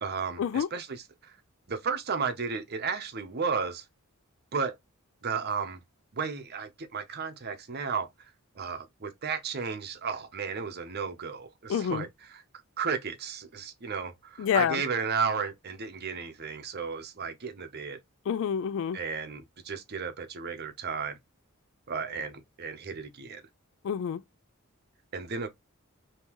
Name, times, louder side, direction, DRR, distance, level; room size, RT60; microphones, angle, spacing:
voice 1, 0.0-1.3 1.7-3.8 4.5-4.8 5.2-5.8 6.1-8.1 8.6-12.4 12.8-18.0 18.9-21.2 21.9-23.4 25.1-25.5, right 5 dB, 50° right, 0.7 m, -33 dB
voice 2, 11.7-12.1 14.4-14.8 18.3-19.0 23.8-24.2, left 8 dB, 65° left, 0.3 m, -28 dB
3.5 x 2.8 x 2.9 m
head